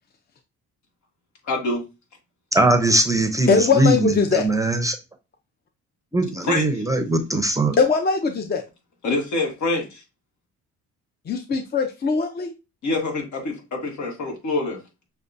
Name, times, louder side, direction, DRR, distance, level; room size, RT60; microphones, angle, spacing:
voice 1, 1.5-1.8 6.5-6.6 9.0-10.0 12.8-14.8, left 2 dB, 70° left, 1.5 m, -25 dB
voice 2, 2.5-5.0 6.1-7.8, right 2 dB, 10° right, 0.6 m, -20 dB
voice 3, 3.5-4.5 7.8-8.6 11.3-12.5, left 5 dB, 30° left, 0.6 m, -21 dB
6.4 x 2.3 x 2.6 m
cardioid pair, 90°, 30 cm